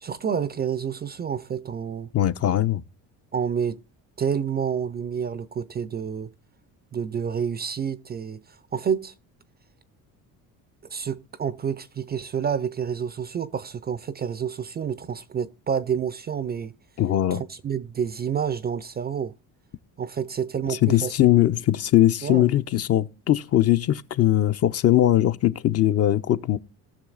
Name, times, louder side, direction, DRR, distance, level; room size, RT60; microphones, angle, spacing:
voice 1, 0.0-2.1 3.3-3.8 4.2-6.3 6.9-9.1 10.9-16.7 17.3-19.3 20.0-21.1 22.2-22.5, right 7 dB, 25° right, 0.4 m, -29 dB
voice 2, 2.1-2.8 17.0-17.4 20.7-26.6, left 13 dB, 40° left, 0.5 m, -20 dB
18.5 x 6.3 x 2.4 m
cardioid pair, 100°, 40 cm